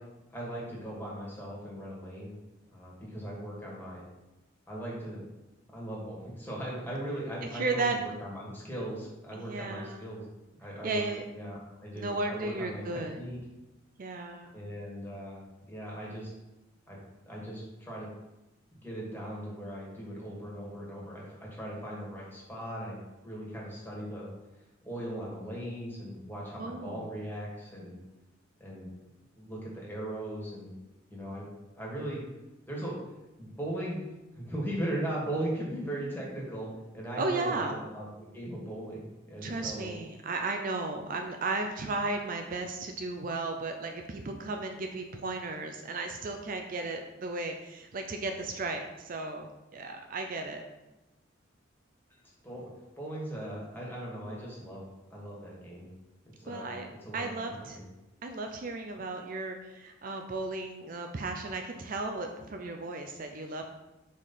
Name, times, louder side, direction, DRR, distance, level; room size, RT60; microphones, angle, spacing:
voice 1, 0.3-2.3 2.7-4.0 4.7-5.2 5.7-10.2 10.6-11.1 11.3-13.4 14.5-15.4 15.7-16.3 16.9-17.0 17.2-18.1 18.8-23.0 23.2-24.3 24.8-28.0 28.6-28.9 29.4-30.7 31.1-31.4 31.8-32.2 32.7-33.0 33.4-34.0 34.4-36.7 36.9-39.9 52.4-52.7 53.0-54.8 55.1-55.9 56.4-56.7 57.0-57.8, right 1 dB, 10° left, -4 dB, 1.8 m, -38 dB
voice 2, 7.5-8.0 9.3-10.1 10.8-11.2 12.0-13.2 14.0-14.5 26.6-27.1 37.2-37.8 39.4-50.6 56.4-56.9 57.1-57.8 58.2-63.7, right 3 dB, 45° right, 4 dB, 0.4 m, -35 dB
5.0 x 4.2 x 5.6 m, 1.0 s
head